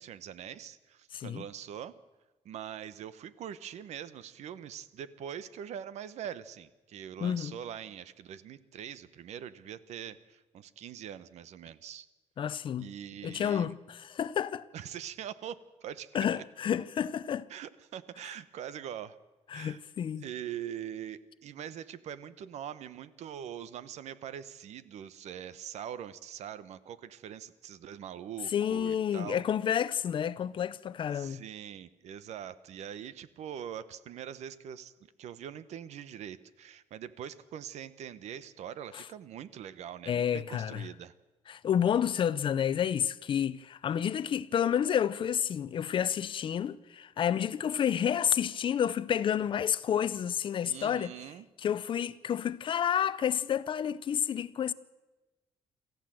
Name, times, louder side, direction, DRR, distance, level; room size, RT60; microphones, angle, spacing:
voice 1, 0.0-1.9 2.4-12.1 12.8-13.8 14.7-16.4 17.5-19.2 19.5-19.8 20.2-29.4 31.1-34.9 35.2-41.1 50.6-51.5, right 9 dB, 75° right, 1.0 m, -43 dB
voice 2, 1.1-1.4 7.2-7.5 12.4-12.9 13.2-14.7 16.1-17.5 19.5-20.2 28.5-31.4 38.9-39.0 40.1-40.8 41.5-51.1 51.6-54.7, left 9 dB, 45° left, 0.6 m, -30 dB
26.0 x 14.5 x 7.7 m
cardioid pair, 155°, 12 cm